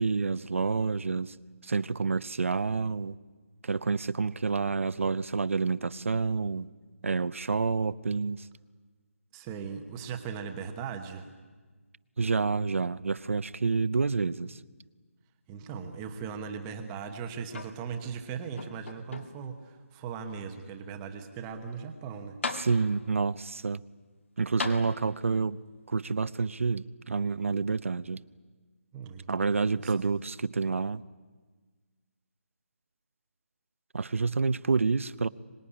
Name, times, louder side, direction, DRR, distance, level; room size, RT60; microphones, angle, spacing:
voice 1, 0.0-1.4 1.6-3.2 3.6-6.7 7.0-8.5 12.2-14.6 22.5-23.8 24.4-25.6 25.9-28.2 29.3-31.0 33.9-35.3, right 4 dB, 65° right, 17 dB, 0.8 m, -28 dB
voice 2, 9.3-11.3 15.5-22.4 28.9-30.1, right 6 dB, 10° right, 6 dB, 1.0 m, -39 dB
sound 1, 17.5-18.2 18.6-19.6 20.3-20.4 22.0-22.1 22.4-23.2 24.6-25.4 26.5-26.6, left 3 dB, 55° left, 1.9 m, -38 dB
24.5 x 20.0 x 9.9 m, 1.4 s
hypercardioid pair, 175°, 8 cm